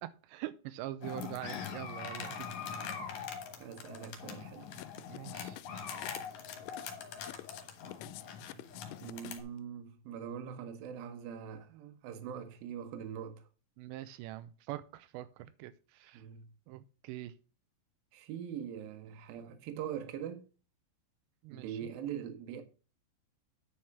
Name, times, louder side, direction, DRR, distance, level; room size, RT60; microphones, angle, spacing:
voice 1, 0.0-2.5 5.1-5.6 13.8-16.2 16.7-17.3 21.4-21.8, right 14 dB, 90° right, 2.8 m, -44 dB
sound 1, 1.0-9.4, left 6 dB, 60° left, 2.6 m, -43 dB
voice 2, 3.6-4.7 9.0-13.5 16.1-16.5 18.1-20.5 21.5-22.6, right 8 dB, 70° right, 2.7 m, -42 dB
sound 2, 4.7-9.6, left 17 dB, 90° left, 2.8 m, -49 dB
10.0 x 4.7 x 5.8 m
omnidirectional pair, 4.9 m